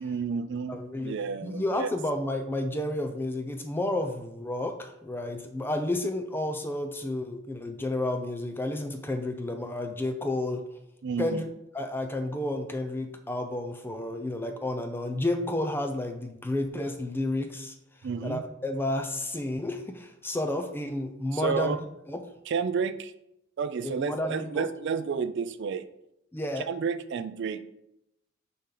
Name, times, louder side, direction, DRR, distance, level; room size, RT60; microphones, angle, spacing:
voice 1, 0.0-1.9 11.0-11.4 18.0-18.4 21.3-21.8 22.5-23.1 23.6-25.9 26.7-27.7, right 6 dB, 55° right, 12 dB, 0.3 m, -31 dB
voice 2, 0.7-10.6 11.2-11.5 11.7-17.7 18.2-22.2 23.8-24.7 26.3-26.7, left 1 dB, 10° left, 6 dB, 0.4 m, -31 dB
6.7 x 4.3 x 3.8 m, 0.82 s
head